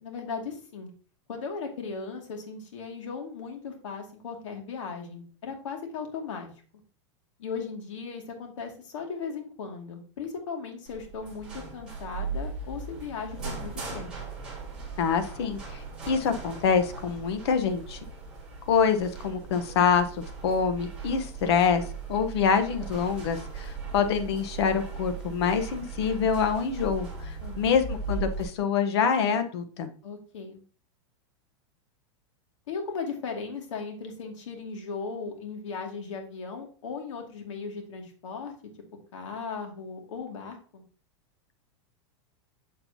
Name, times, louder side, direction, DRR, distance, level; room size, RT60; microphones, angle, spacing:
voice 1, 0.0-0.9 1.3-6.5 7.4-14.1 27.4-27.8 30.0-30.6 32.7-38.5 39.1-40.8, left 5 dB, 90° left, 3 dB, 2.3 m, -37 dB
sound 1, 10.9-28.4, right 4 dB, 5° right, 3.7 m, -38 dB
voice 2, 15.0-18.0 18.7-21.8 22.1-29.9, left 6 dB, 60° left, 8 dB, 1.1 m, -26 dB
7.5 x 7.2 x 2.8 m, 0.40 s
supercardioid pair, 175°, 15 cm